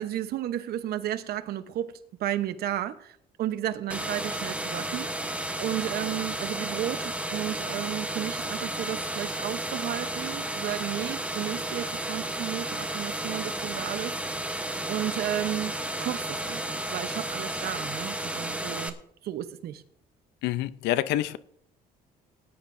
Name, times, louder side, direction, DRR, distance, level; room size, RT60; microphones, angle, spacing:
voice 1, 0.0-15.7 16.0-18.9 19.2-19.8, right 12 dB, 70° right, 1.0 m, -33 dB
sound 1, 3.9-18.9, right 1 dB, 10° right, 1.0 m, -33 dB
voice 2, 20.4-21.4, left 14 dB, 90° left, 0.6 m, -27 dB
18.5 x 10.5 x 2.6 m
cardioid pair, 110°, 17 cm